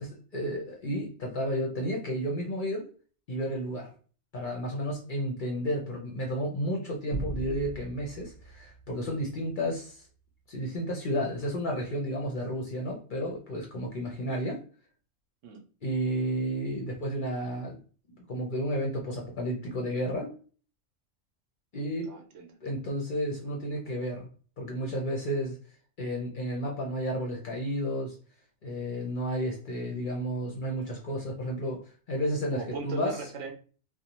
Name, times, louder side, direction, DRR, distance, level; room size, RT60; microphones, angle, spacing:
voice 1, 0.0-2.9 3.3-3.9 4.3-10.0 10.5-14.6 15.8-17.8 18.3-20.3 21.7-22.1 22.6-24.3 24.6-25.6 26.0-28.2 28.6-31.8 32.1-33.2, equal, 50° left, -1 dB, 0.6 m, -32 dB
sound 1, 7.1-9.7, right 1 dB, 5° left, 0.5 m, -40 dB
voice 2, 22.0-22.6 32.5-33.5, right 4 dB, 75° right, 3 dB, 0.9 m, -39 dB
2.6 x 2.0 x 2.9 m, 0.39 s
omnidirectional pair, 1.3 m